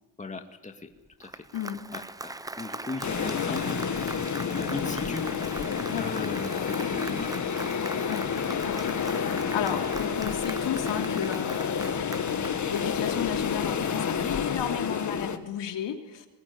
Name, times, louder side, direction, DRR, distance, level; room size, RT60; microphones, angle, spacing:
voice 1, 0.2-0.9 1.2-1.4 1.9-4.3 4.5-5.3 5.9-7.3, left 3 dB, 15° left, 4 dB, 2.2 m, -38 dB
Applause, 1.1-13.6, right 2 dB, 10° right, 0.7 m, -41 dB
voice 2, 1.5-1.9 5.9-6.1 8.1-8.3 8.6-16.3, left 9 dB, 70° left, 4 dB, 3.3 m, -34 dB
sound 1, 3.0-15.4, left 6 dB, 40° left, 1.9 m, -29 dB
23.0 x 20.0 x 9.6 m, 1.1 s
cardioid pair, 115°, 44 cm